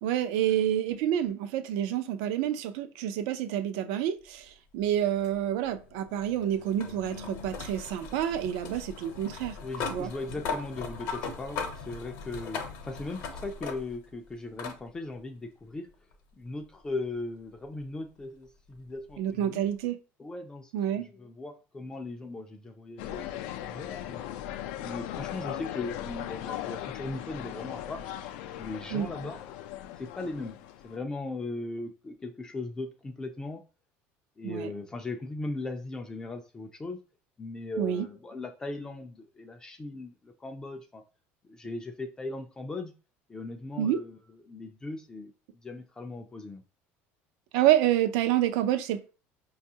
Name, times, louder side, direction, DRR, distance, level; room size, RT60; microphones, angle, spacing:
voice 1, 0.0-9.6 9.9-10.1 19.2-20.0 20.7-21.1 28.9-29.1 34.4-34.7 37.8-38.1 43.8-44.0 47.5-49.0, right 11 dB, 80° right, 0.4 m, -28 dB
sound 1, 5.2-14.1 14.6-14.8 16.1-16.2 19.1-19.2, left 5 dB, 70° left, 0.8 m, -39 dB
voice 2, 9.6-15.9 16.4-19.7 20.2-23.2 23.6-24.2 24.8-28.0 28.6-29.4 30.0-30.6 30.8-33.6 34.4-37.0 37.4-41.0 41.5-42.9 43.3-44.2 44.4-46.6, left 2 dB, 15° left, 0.3 m, -38 dB
sound 2, 23.0-31.0, left 12 dB, 85° left, 0.4 m, -38 dB
5.3 x 2.3 x 2.7 m
cardioid pair, 160°, 5 cm